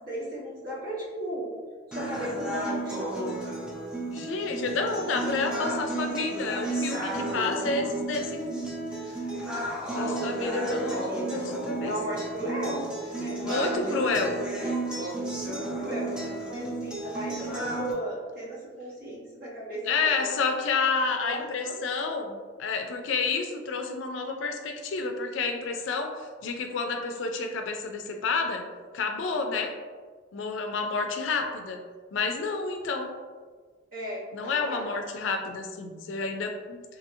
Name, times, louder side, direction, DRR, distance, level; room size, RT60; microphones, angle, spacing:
voice 1, 0.0-1.5 1.9-3.2 9.8-11.4 11.8-12.9 13.2-14.1 14.6-15.1 15.4-20.4 21.2-21.7 33.9-34.9, equal, 50° right, -7 dB, 1.0 m, -36 dB
sound 1, 1.9-17.9, right 2 dB, 5° right, 0.4 m, -33 dB
voice 2, 4.1-8.7 10.0-11.0 11.3-11.9 13.4-14.3 19.9-28.6 28.9-29.7 30.3-31.8 32.1-33.1 34.3-36.8, left 4 dB, 70° left, 5 dB, 0.4 m, -30 dB
2.7 x 2.7 x 2.6 m, 1.5 s
head